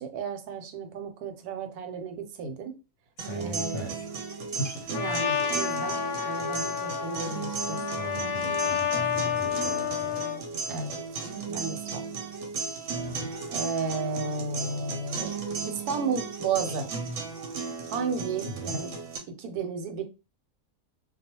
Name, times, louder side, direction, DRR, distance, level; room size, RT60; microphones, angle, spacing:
voice 1, 0.0-2.7 3.3-3.9 4.9-7.8 10.7-11.0 11.5-12.0 13.5-15.3 15.6-16.9 17.9-18.9 19.4-20.0, right 5 dB, 85° right, 1.1 m, -33 dB
voice 2, 3.2-3.9 4.6-4.9 8.0-9.9 13.0-13.5 18.5-18.8, equal, 60° left, 0.9 m, -38 dB
sound 1, 3.2-19.2, right 4 dB, 65° right, 0.9 m, -35 dB
Trumpet, 4.9-10.4, left 8 dB, 85° left, 1.1 m, -30 dB
2.3 x 2.3 x 2.8 m
omnidirectional pair, 1.6 m